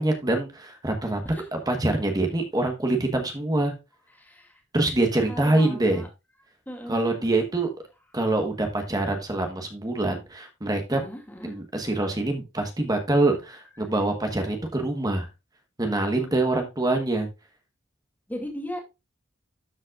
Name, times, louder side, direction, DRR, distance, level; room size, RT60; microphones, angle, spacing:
voice 1, 0.0-1.2 1.7-3.7 4.7-6.0 6.9-7.7 8.1-11.0 11.4-15.3 15.8-17.3, right 2 dB, 20° right, 4 dB, 1.3 m, -25 dB
voice 2, 4.2-4.6 5.3-6.1 6.7-7.4 10.9-11.6 16.2-16.3 18.3-18.8, equal, 10° left, 0 dB, 2.5 m, -37 dB
12.5 x 5.4 x 2.5 m, 0.25 s
head